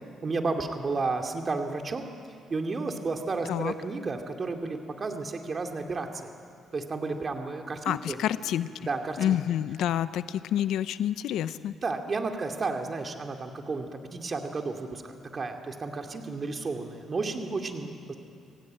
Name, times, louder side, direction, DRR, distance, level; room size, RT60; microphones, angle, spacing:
voice 1, 0.2-2.1 2.5-6.1 6.7-8.2 8.9-9.4 11.8-18.1, right 3 dB, 35° right, 4 dB, 2.5 m, -32 dB
voice 2, 7.8-8.7 9.2-11.7, left 11 dB, 85° left, 14 dB, 0.6 m, -28 dB
26.5 x 16.5 x 8.9 m, 2.4 s
cardioid pair, 90°, 0 cm